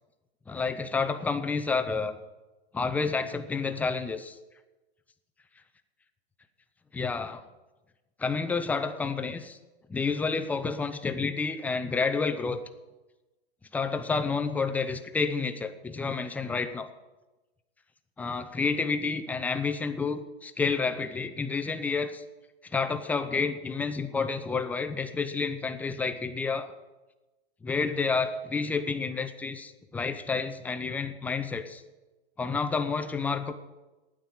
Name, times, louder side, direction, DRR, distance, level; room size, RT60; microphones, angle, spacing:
voice 1, 0.5-2.1 2.7-4.4 6.9-7.4 8.2-9.6 9.9-12.6 13.7-16.9 18.2-22.2 22.7-26.7 27.6-31.8 32.4-33.5, left 4 dB, 5° left, 8 dB, 0.5 m, -29 dB
9.3 x 8.8 x 9.6 m, 1.1 s
hypercardioid pair, 145°, 32 cm